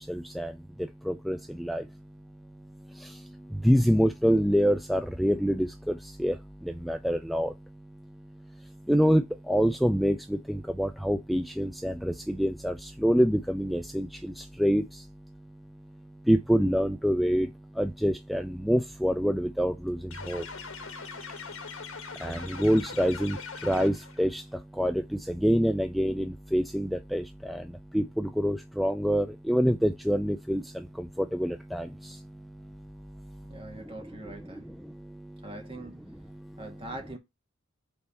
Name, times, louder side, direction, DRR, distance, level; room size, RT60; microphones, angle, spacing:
voice 1, 0.1-0.5 1.1-1.8 3.6-6.3 6.8-7.5 8.9-14.8 16.3-17.5 17.8-20.0 20.3-20.4 22.2-23.4 23.6-24.4 24.8-25.0 25.3-27.6 27.9-30.6 31.0-31.9, equal, ahead, 0.4 m, -26 dB
sound 1, 20.1-24.3, left 5 dB, 80° left, 1.3 m, -41 dB
voice 2, 33.5-34.7 35.4-36.1 36.6-37.2, right 1 dB, 25° right, 1.8 m, -42 dB
5.5 x 4.2 x 4.2 m
head